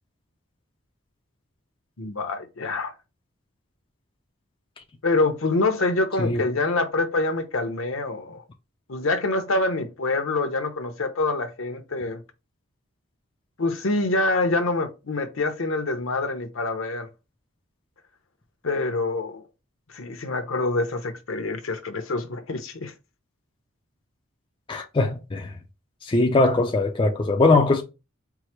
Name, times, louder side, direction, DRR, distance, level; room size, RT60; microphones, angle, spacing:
voice 1, 2.0-2.9 5.0-8.4 8.9-12.2 13.6-17.1 18.6-19.4 19.9-22.9, left 2 dB, 65° left, 0.8 m, -26 dB
voice 2, 24.7-25.6 26.0-27.8, left 2 dB, 25° left, 0.4 m, -21 dB
4.7 x 2.0 x 4.3 m
head